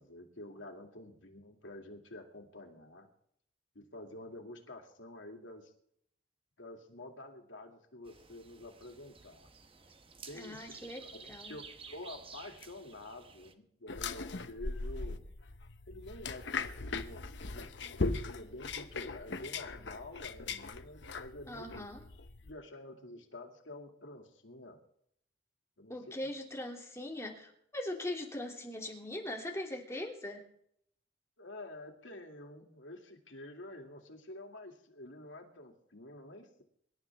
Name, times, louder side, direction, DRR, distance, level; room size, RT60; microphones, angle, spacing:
voice 1, 0.0-3.1 3.7-5.7 6.6-9.5 10.2-15.3 15.9-17.7 18.2-21.7 22.4-24.8 25.8-25.9 31.4-36.6, left 1 dB, 90° left, 3 dB, 2.5 m, -49 dB
sound 1, 8.0-13.5, right 5 dB, 30° right, 1.1 m, -53 dB
voice 2, 10.3-11.0 11.3-11.6 21.5-22.0 25.9-30.4, left 1 dB, 15° left, 0 dB, 2.8 m, -40 dB
sound 2, 13.9-22.5, left 3 dB, 65° left, 1.0 m, -39 dB
24.5 x 12.0 x 3.6 m, 0.69 s
head